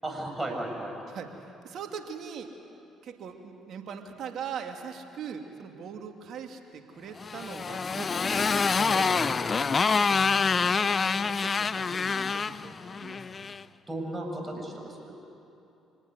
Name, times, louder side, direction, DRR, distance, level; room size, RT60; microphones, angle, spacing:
voice 1, 0.0-0.9 8.8-9.2 13.9-15.1, right 1 dB, 15° right, 1 dB, 7.2 m, -35 dB
voice 2, 1.6-2.5 3.0-8.3 8.9-9.2 9.9-10.2 10.5-12.7 13.0-13.4, right 7 dB, 65° right, 4 dB, 2.5 m, -41 dB
Motorcycle, 7.2-13.6, left 5 dB, 40° left, 0.6 m, -26 dB
26.5 x 19.0 x 9.6 m, 2.8 s
hypercardioid pair, 60°, 0 cm